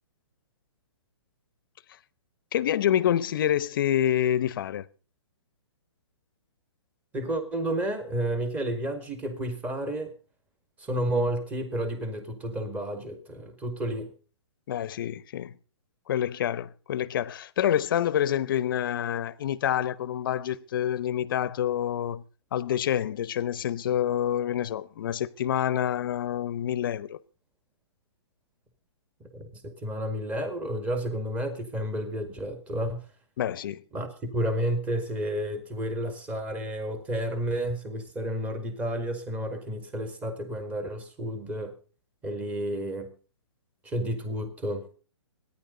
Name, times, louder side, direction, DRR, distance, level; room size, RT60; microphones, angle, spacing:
voice 1, 2.5-4.8 14.7-15.5 16.1-22.2 22.5-27.2 33.4-33.8, left 10 dB, 45° left, 0.9 m, -27 dB
voice 2, 7.1-10.1 10.8-14.1 29.2-33.1 33.9-41.7 42.2-43.1 43.8-44.9, right 1 dB, 10° right, 1.8 m, -31 dB
24.5 x 10.5 x 3.9 m
hypercardioid pair, 160°, 15 cm